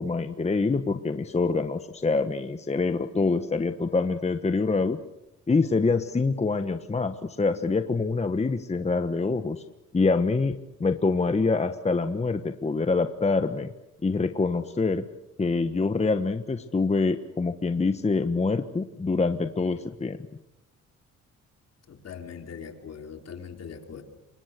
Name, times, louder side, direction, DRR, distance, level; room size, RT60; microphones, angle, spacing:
voice 1, 0.0-5.0 5.5-9.6 9.9-13.7 14.0-15.0 15.4-20.2, left 3 dB, 20° left, 8 dB, 1.3 m, -25 dB
voice 2, 21.9-24.0, left 7 dB, 55° left, 4 dB, 4.2 m, -41 dB
27.5 x 24.0 x 6.8 m, 0.90 s
cardioid pair, 90°, 30 cm